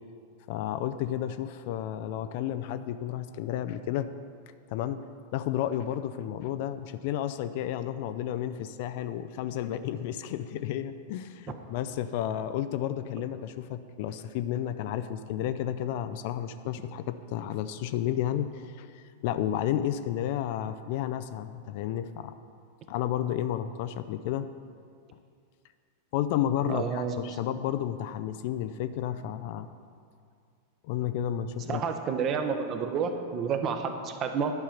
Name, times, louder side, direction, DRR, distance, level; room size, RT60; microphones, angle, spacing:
voice 1, 0.5-4.1 4.7-5.0 5.3-22.3 22.9-24.5 26.1-29.7 30.8-31.8, left 11 dB, 50° left, 11 dB, 0.4 m, -32 dB
voice 2, 26.7-27.2 31.7-34.5, right 6 dB, 35° right, 6 dB, 0.9 m, -30 dB
11.0 x 5.6 x 6.0 m, 2.3 s
figure-of-eight pair, 90°, 0 cm